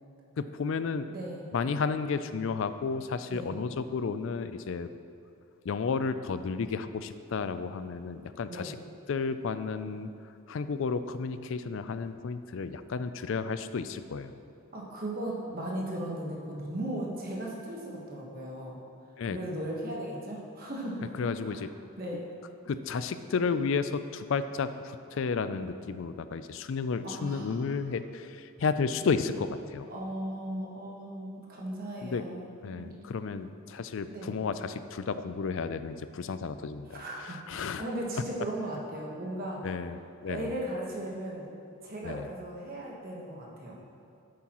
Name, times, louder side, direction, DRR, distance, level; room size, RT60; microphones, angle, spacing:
voice 1, 0.4-1.0 1.5-4.9 5.6-8.8 9.1-10.1 10.5-14.3 19.2-19.4 21.2-21.7 22.7-29.9 32.0-32.2 32.6-37.8 39.6-40.6 42.0-42.3, left 5 dB, 60° left, 11 dB, 0.4 m, -32 dB
voice 2, 1.1-1.4 3.3-3.5 8.5-8.7 14.7-18.8 19.3-21.1 21.4-21.7 22.0-22.3 27.0-27.6 29.9-32.4 32.7-32.9 34.1-34.3 36.9-39.6 40.3-41.5 41.8-43.8, right 1 dB, 40° right, -3 dB, 1.3 m, -37 dB
11.0 x 8.6 x 3.0 m, 2.5 s
head